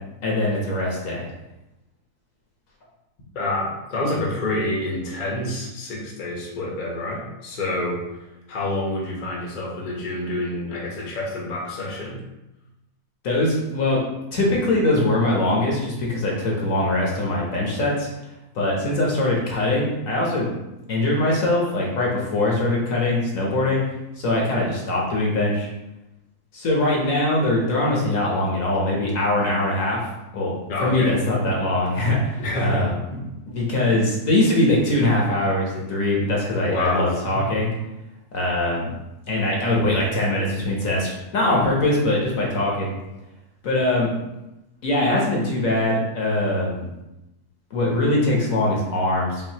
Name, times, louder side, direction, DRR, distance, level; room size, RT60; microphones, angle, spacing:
voice 1, 0.2-1.3 13.2-14.0 14.3-18.1 18.5-20.5 20.9-23.8 24.2-25.7 26.5-30.1 30.3-30.5 30.8-32.9 33.5-37.7 38.3-38.9 39.3-42.9 43.6-44.1 44.8-46.9 47.7-49.5, left 1 dB, 60° left, -3 dB, 1.2 m, -22 dB
voice 2, 3.3-12.2 30.7-31.1 31.4-31.5 32.4-32.9 36.6-37.2, left 1 dB, 35° left, -4 dB, 0.9 m, -27 dB
5.3 x 2.6 x 2.8 m, 0.95 s
omnidirectional pair, 1.7 m